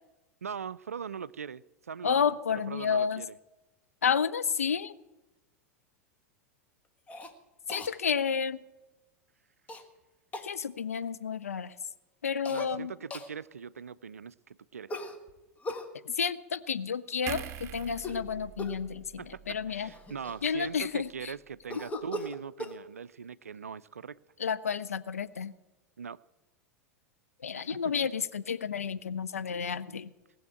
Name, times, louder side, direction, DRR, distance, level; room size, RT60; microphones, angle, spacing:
voice 1, 0.4-2.4 2.7-3.4 12.5-14.9 19.2-24.2 26.0-26.2 27.6-27.8, right 6 dB, 75° right, 20 dB, 0.4 m, -41 dB
voice 2, 2.0-3.2 4.0-4.9 7.7-8.6 10.4-11.7 12.2-12.9 16.1-19.9 20.4-21.3 24.4-25.5 27.4-30.1, left 7 dB, 75° left, 13 dB, 0.6 m, -31 dB
Cough, 7.1-7.3 7.7-7.9 9.7-9.8 10.3-10.5 12.4-12.7 13.1-13.3 14.9-15.9 17.9-18.3 18.6-18.9 19.5-19.6 19.9-20.9 21.7-22.8, left 1 dB, 20° left, 1.4 m, -39 dB
sound 1, 17.3-20.6 21.0-21.2, right 9 dB, 35° right, 0.9 m, -44 dB
19.0 x 7.1 x 8.6 m, 1.1 s
figure-of-eight pair, 85°, 8 cm